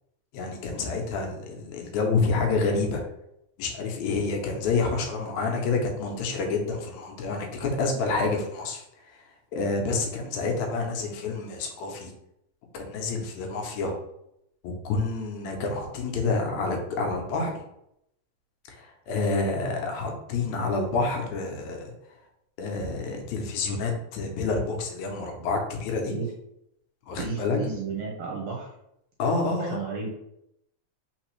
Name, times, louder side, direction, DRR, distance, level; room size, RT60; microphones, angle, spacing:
voice 1, 0.3-3.0 3.6-8.8 9.1-9.2 9.5-12.1 12.7-14.0 14.6-17.5 18.7-21.8 22.6-26.2 27.1-27.6 29.2-29.8, left 3 dB, 75° left, 2 dB, 2.0 m, -28 dB
voice 2, 27.2-28.7 29.4-30.1, right 4 dB, 70° right, -1 dB, 1.6 m, -33 dB
4.3 x 4.0 x 3.0 m, 0.79 s
omnidirectional pair, 3.5 m